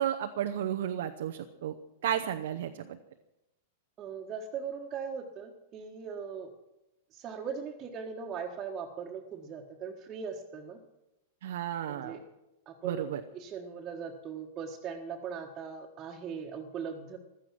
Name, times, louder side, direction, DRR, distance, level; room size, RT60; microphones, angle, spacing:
voice 1, 0.0-1.7 2.0-3.0 11.4-12.2 12.8-13.2, right 10 dB, 55° right, 6 dB, 0.8 m, -33 dB
voice 2, 4.0-6.5 7.1-10.8 11.9-12.2 12.6-13.0 13.3-17.2, right 6 dB, 25° right, -2 dB, 1.5 m, -39 dB
16.0 x 12.5 x 6.1 m, 0.93 s
figure-of-eight pair, 95°, 0 cm